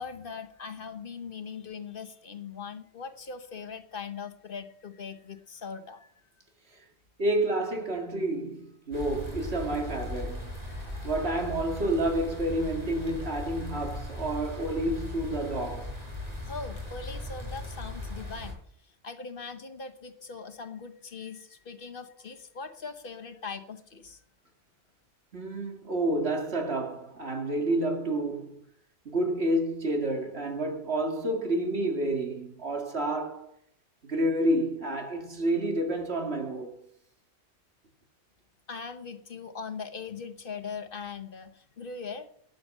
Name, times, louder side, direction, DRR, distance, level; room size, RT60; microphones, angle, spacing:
voice 1, 0.0-6.1 10.7-11.2 16.4-24.2 38.7-42.3, left 5 dB, 55° left, 1.2 m, -41 dB
voice 2, 7.2-10.6 11.0-15.9 25.3-28.6 29.0-33.5 34.0-36.9, right 1 dB, 70° right, 2.5 m, -29 dB
sound 1, 8.9-18.5, left 1 dB, 35° right, 5.3 m, -38 dB
12.5 x 9.4 x 5.4 m
omnidirectional pair, 1.1 m